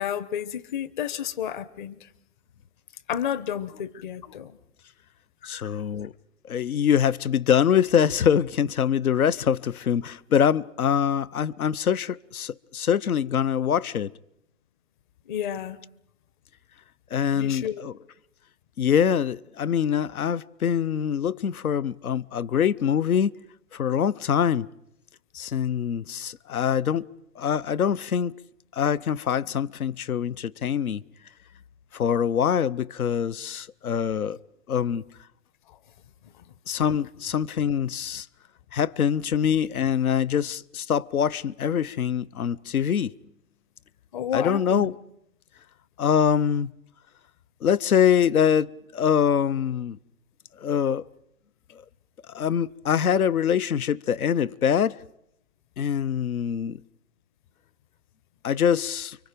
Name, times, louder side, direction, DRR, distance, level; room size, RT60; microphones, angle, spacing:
voice 1, 0.0-2.1 3.1-4.6 5.4-5.7 15.3-15.8 17.3-17.8 44.1-44.9, left 9 dB, 35° left, 1.0 m, -31 dB
voice 2, 5.5-6.1 6.5-14.1 17.1-17.9 18.8-23.3 23.7-24.7 25.3-27.1 27.4-28.3 28.7-31.0 31.9-34.4 34.7-35.0 36.7-38.3 38.7-43.1 44.3-45.0 46.0-46.7 47.6-50.0 50.6-51.0 52.3-55.0 55.8-56.8 58.4-59.2, left 8 dB, 85° left, 0.8 m, -24 dB
30.0 x 24.0 x 5.2 m
hypercardioid pair, 150°, 42 cm